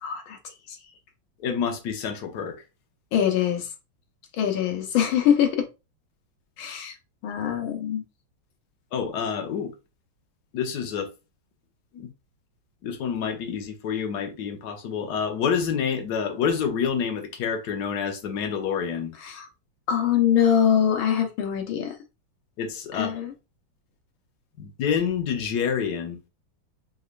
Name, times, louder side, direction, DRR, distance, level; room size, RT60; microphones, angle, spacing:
voice 1, 0.0-0.4 3.1-3.7 4.4-5.7 6.6-6.9 7.2-8.0 19.2-19.5 19.9-21.9 22.9-23.3, left 9 dB, 90° left, 1.7 m, -23 dB
voice 2, 1.4-2.6 8.9-9.7 10.5-11.1 11.9-12.1 12.8-19.1 22.6-23.1 24.6-26.2, left 7 dB, 65° left, 1.3 m, -28 dB
5.2 x 3.2 x 2.5 m
omnidirectional pair, 2.1 m